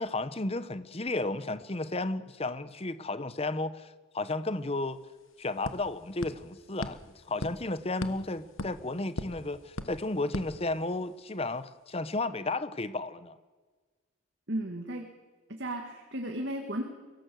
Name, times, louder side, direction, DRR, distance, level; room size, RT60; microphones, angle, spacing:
voice 1, 0.0-5.0 5.4-7.0 7.3-13.4, left 2 dB, 30° left, 14 dB, 0.9 m, -33 dB
sound 1, 4.5-4.6 4.9-11.3, left 2 dB, 70° left, 1.3 m, -42 dB
voice 2, 14.5-15.1 15.5-16.8, right 1 dB, 55° right, 3 dB, 2.1 m, -34 dB
24.0 x 17.0 x 7.8 m, 1.4 s
head